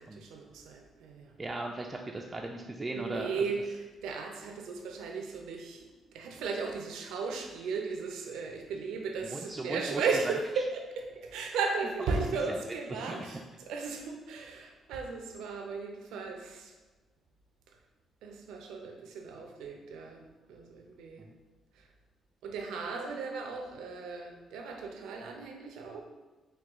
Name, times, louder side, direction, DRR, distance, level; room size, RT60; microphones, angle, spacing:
voice 1, 0.0-1.4 2.9-5.9 6.1-16.7 18.2-20.2 20.5-21.3 21.7-21.8 22.4-26.0, right 4 dB, 90° right, 2 dB, 0.6 m, -36 dB
voice 2, 1.4-3.3 9.2-10.4 13.1-13.2 21.2-21.3, right 2 dB, 25° right, 1 dB, 0.3 m, -37 dB
4.5 x 2.3 x 3.5 m, 1.2 s
cardioid pair, 90°, 0 cm